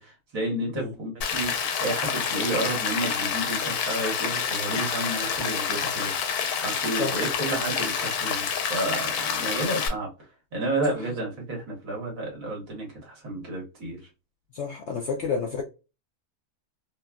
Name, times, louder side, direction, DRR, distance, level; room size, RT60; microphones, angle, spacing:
voice 1, 0.0-10.1 10.5-14.0, right 2 dB, 65° right, 1.7 m, -31 dB
Rain, 1.2-9.9, left 7 dB, 90° left, 1.1 m, -28 dB
voice 2, 14.5-15.6, left 5 dB, 70° left, 0.7 m, -30 dB
3.3 x 2.2 x 2.2 m
omnidirectional pair, 1.6 m